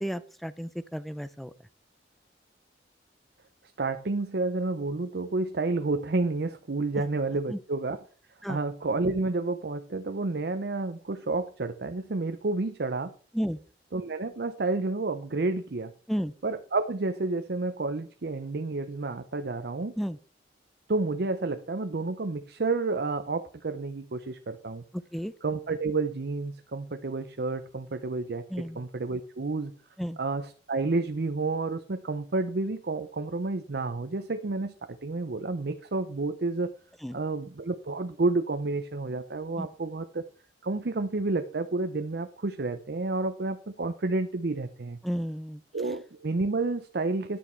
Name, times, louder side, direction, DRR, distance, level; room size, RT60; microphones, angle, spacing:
voice 1, 0.0-1.5 7.5-7.6 8.4-8.6 13.3-13.6 16.1-16.3 20.0-20.2 25.1-25.3 28.5-28.8 30.0-30.2 37.0-37.2 39.6-39.7 45.0-45.6, equal, ahead, 14 dB, 0.5 m, -32 dB
voice 2, 3.8-8.0 8.5-13.1 13.9-15.9 16.4-19.9 20.9-24.8 25.4-28.4 28.7-29.7 30.2-36.7 37.1-40.3 40.6-45.0 45.7-47.4, right 3 dB, 60° right, 8 dB, 0.6 m, -30 dB
10.0 x 8.5 x 4.4 m, 0.41 s
head